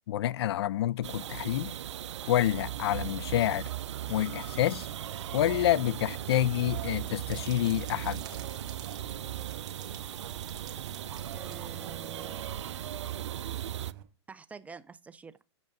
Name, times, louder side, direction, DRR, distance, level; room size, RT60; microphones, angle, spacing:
voice 1, 0.1-1.7 2.3-3.7 4.1-4.9 5.3-8.2, left 13 dB, 60° left, 0.4 m, -28 dB
sound 1, 1.0-13.9, right 11 dB, 75° right, 0.4 m, -38 dB
Idling, 4.4-14.0, right 12 dB, 55° right, 1.5 m, -48 dB
sound 2, 7.3-12.2, right 9 dB, 25° right, 1.7 m, -52 dB
voice 2, 11.3-12.8 14.3-15.4, right 5 dB, 10° right, 0.3 m, -48 dB
7.3 x 5.2 x 3.9 m
hypercardioid pair, 120°, 15 cm